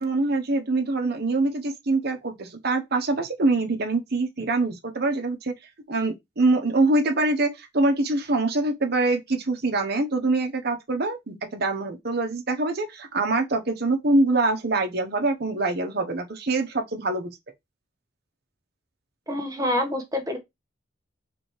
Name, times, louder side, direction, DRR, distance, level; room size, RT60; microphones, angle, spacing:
voice 1, 0.0-5.5 5.9-17.3, right 2 dB, 55° right, 1.0 m, -24 dB
voice 2, 19.3-20.4, left 1 dB, 20° right, 1.2 m, -26 dB
4.8 x 3.5 x 3.2 m
head